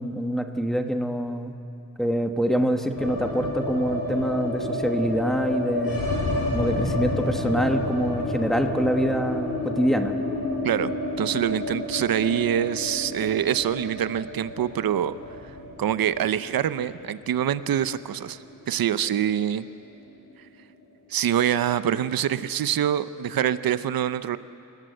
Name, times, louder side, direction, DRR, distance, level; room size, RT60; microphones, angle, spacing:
voice 1, 0.0-1.5 2.0-6.1 6.5-10.2, equal, ahead, 5 dB, 1.1 m, -25 dB
sound 1, 2.9-19.1 19.3-19.4 19.7-20.4, left 2 dB, 85° left, 8.0 m, -30 dB
voice 2, 10.6-15.1 15.8-18.4 18.7-19.7 21.1-24.4, right 10 dB, 90° right, 14 dB, 0.7 m, -25 dB
28.5 x 18.0 x 7.9 m, 2.8 s
wide cardioid pair, 170°, 34 cm